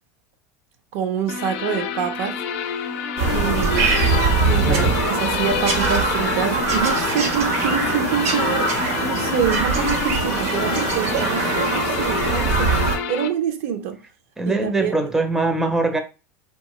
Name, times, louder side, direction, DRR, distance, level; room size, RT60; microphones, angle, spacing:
voice 1, 0.9-2.4 3.3-3.9 4.5-8.7 9.0-12.7 13.1-14.0 14.4-14.9, right 8 dB, 70° right, 0.5 m, -26 dB
sound 1, 1.3-13.3, left 8 dB, 65° left, 0.4 m, -28 dB
Bird vocalization bird call bird song, 3.2-13.0, right 3 dB, 85° right, 0.9 m, -22 dB
voice 2, 4.7-5.0 14.4-16.0, right 3 dB, 5° right, 0.4 m, -22 dB
2.7 x 2.2 x 2.9 m
supercardioid pair, 135°, 8 cm